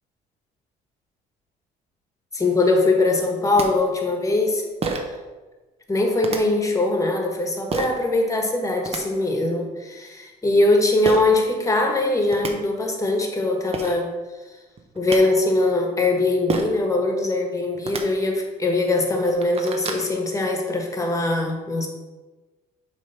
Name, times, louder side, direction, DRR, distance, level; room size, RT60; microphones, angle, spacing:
voice 1, 2.3-4.6 5.9-14.1 14.9-21.9, left 2 dB, 20° left, 2 dB, 1.4 m, -21 dB
sound 1, 3.3-3.4 3.6-3.7 4.8-5.2 6.2-6.4 7.7-8.0 8.6-9.0 11.0-11.2 12.0-12.1 12.3-12.5 13.4-13.5 13.7-14.0 14.8-15.2 16.5-16.8 17.8-18.0 18.7-18.8 19.2-20.1, right 4 dB, 35° right, 1.0 m, -28 dB
7.4 x 3.4 x 5.6 m, 1.2 s
cardioid pair, 110°, 17 cm